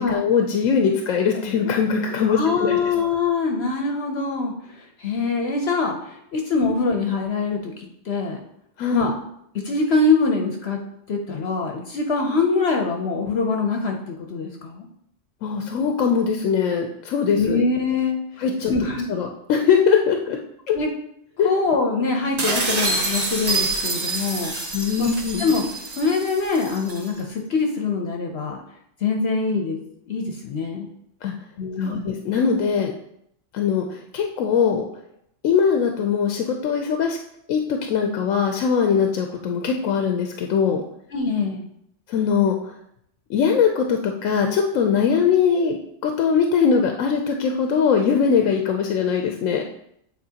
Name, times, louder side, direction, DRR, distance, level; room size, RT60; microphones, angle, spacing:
voice 1, 0.0-2.8 6.6-6.7 8.8-9.1 15.4-17.6 18.4-18.7 19.1-20.4 20.7-20.8 21.4-21.5 24.7-25.5 31.2-31.3 31.8-32.9 33.5-34.8 35.4-37.2 37.5-40.8 42.1-42.7 43.3-45.8 46.0-49.6, left 6 dB, 85° left, 3 dB, 1.0 m, -21 dB
voice 2, 2.3-4.5 5.0-6.0 6.3-7.7 8.1-8.4 8.9-9.1 9.6-10.8 11.1-14.9 17.3-18.2 18.7-19.1 20.7-20.9 21.4-24.5 25.0-25.1 25.4-25.6 25.9-28.6 29.0-29.8 30.1-30.9 31.6-32.1 41.1-41.6, left 4 dB, 60° left, 2 dB, 0.9 m, -23 dB
sound 1, 22.4-27.1, right 2 dB, 35° right, 0.8 m, -26 dB
8.5 x 4.0 x 2.8 m, 0.75 s
omnidirectional pair, 1.3 m